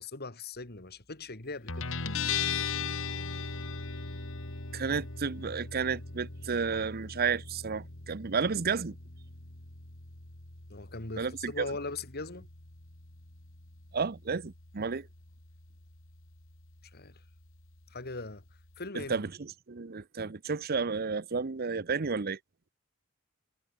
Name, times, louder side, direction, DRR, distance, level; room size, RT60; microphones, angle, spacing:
voice 1, 0.0-1.9 10.7-12.5 16.9-17.2 17.9-18.4 18.8-19.2, left 3 dB, 45° left, 2.8 m, -40 dB
Guitar, 1.7-18.9, left 5 dB, 65° left, 2.8 m, -40 dB
voice 2, 4.7-8.9 11.2-11.7 13.9-15.1 18.9-22.4, right 5 dB, 45° right, 0.8 m, -32 dB
head